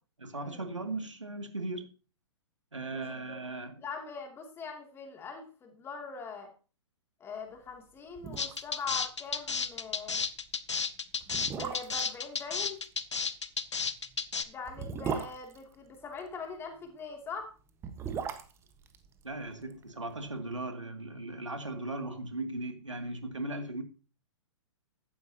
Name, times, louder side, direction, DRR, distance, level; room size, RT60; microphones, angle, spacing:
voice 1, 0.2-1.9 2.7-3.8 19.2-23.8, right 2 dB, 80° right, 2.5 m, -37 dB
voice 2, 3.8-6.5 7.2-10.2 11.4-12.8 14.5-17.5, left 4 dB, 15° left, 2.7 m, -42 dB
sound 1, 7.8-7.9 8.1-8.8 9.1-9.2 9.6-9.8 10.5-10.6 11.2-12.1 13.7-16.3 17.6-19.8 20.1-20.2, right 6 dB, 15° right, 1.3 m, -38 dB
sound 2, 8.4-14.4, left 5 dB, 70° left, 1.0 m, -32 dB
15.0 x 12.0 x 2.9 m
figure-of-eight pair, 115°, 15 cm